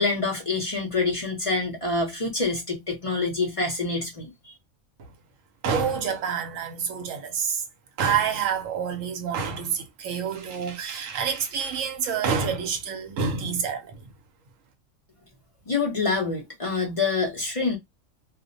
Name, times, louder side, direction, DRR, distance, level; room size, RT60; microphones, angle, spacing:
voice 1, 0.0-4.5 15.7-17.8, left 3 dB, 40° left, 0.5 m, -26 dB
voice 2, 5.6-7.6 8.0-14.0, right 6 dB, 75° right, 1.0 m, -27 dB
2.4 x 2.0 x 2.5 m
omnidirectional pair, 1.4 m